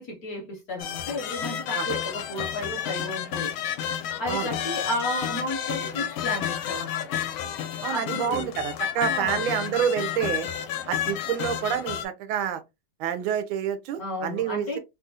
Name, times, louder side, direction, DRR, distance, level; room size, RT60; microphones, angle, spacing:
voice 1, 0.0-3.5 4.2-7.2 7.9-8.5 8.9-9.4 14.0-14.8, left 1 dB, 60° left, 1.0 m, -33 dB
sound 1, 0.8-12.0, left 10 dB, 90° left, 1.4 m, -31 dB
voice 2, 7.8-10.5 10.9-12.6 13.0-14.8, right 9 dB, 90° right, 1.4 m, -28 dB
3.4 x 2.4 x 2.6 m
omnidirectional pair, 2.2 m